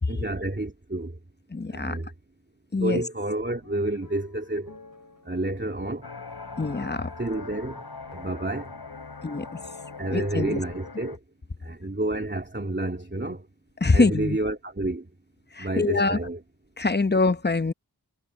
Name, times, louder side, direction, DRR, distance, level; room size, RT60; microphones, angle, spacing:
voice 1, 0.1-1.2 1.7-2.1 2.7-4.7 5.2-6.1 7.2-8.8 10.0-11.2 11.6-13.5 13.9-15.1 15.6-16.4, right 2 dB, 25° right, 3.0 m, -30 dB
voice 2, 1.5-2.0 2.7-3.0 6.6-7.1 9.2-9.6 10.1-10.6 13.8-14.4 15.5-16.2 16.8-17.7, left 3 dB, 25° left, 0.8 m, -24 dB
sound 1, 3.4-11.0, left 3 dB, 55° left, 6.4 m, -51 dB
sound 2, 6.0-11.2, left 4 dB, 75° left, 4.0 m, -42 dB
wide cardioid pair, 55°, 40 cm